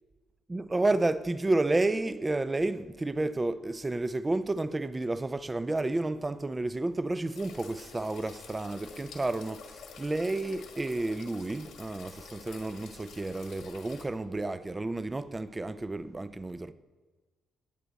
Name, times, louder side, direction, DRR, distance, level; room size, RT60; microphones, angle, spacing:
voice 1, 0.5-9.6 10.0-16.7, right 2 dB, 20° right, 0.6 m, -31 dB
sound 1, 7.3-14.1, left 5 dB, 80° left, 1.8 m, -49 dB
18.0 x 8.0 x 4.1 m
cardioid pair, 90°, 0 cm